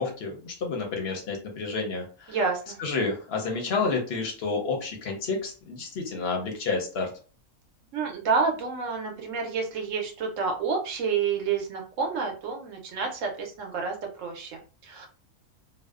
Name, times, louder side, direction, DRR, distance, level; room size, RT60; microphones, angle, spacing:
voice 1, 0.0-2.4 2.8-7.1, left 4 dB, 60° left, 2 dB, 0.7 m, -30 dB
voice 2, 2.3-2.8 7.9-15.1, right 5 dB, 65° right, 2 dB, 0.9 m, -29 dB
2.6 x 2.0 x 2.3 m, 0.38 s
omnidirectional pair, 1.5 m